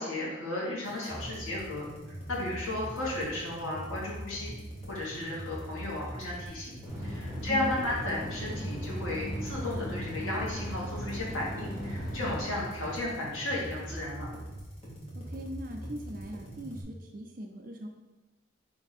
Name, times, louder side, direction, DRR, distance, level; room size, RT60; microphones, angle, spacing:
voice 1, 0.0-4.5 4.9-6.7 7.0-14.3, left 1 dB, 75° left, -4 dB, 1.3 m, -34 dB
sound 1, 0.8-16.8, equal, 30° left, 1.0 m, -42 dB
sound 2, 6.8-12.4, equal, 5° right, 0.8 m, -38 dB
voice 2, 7.5-7.8 15.1-17.9, equal, 40° right, 2 dB, 0.5 m, -40 dB
4.5 x 2.6 x 4.1 m, 1.1 s
head